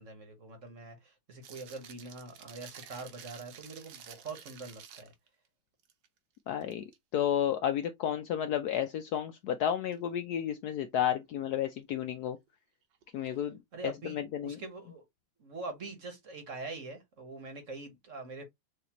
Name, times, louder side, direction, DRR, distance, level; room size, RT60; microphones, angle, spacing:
voice 1, 0.0-5.1 13.2-13.4 13.7-15.0 15.4-18.4, right 3 dB, 45° right, 1.4 m, -44 dB
sound 1, 1.4-5.3 5.8-6.1 6.5-7.0 9.9-10.0 12.9-13.2, right 8 dB, 70° right, 1.5 m, -51 dB
voice 2, 6.5-12.4 13.1-13.6 13.8-14.6, left 10 dB, 75° left, 0.9 m, -32 dB
6.5 x 2.8 x 2.9 m
omnidirectional pair, 2.1 m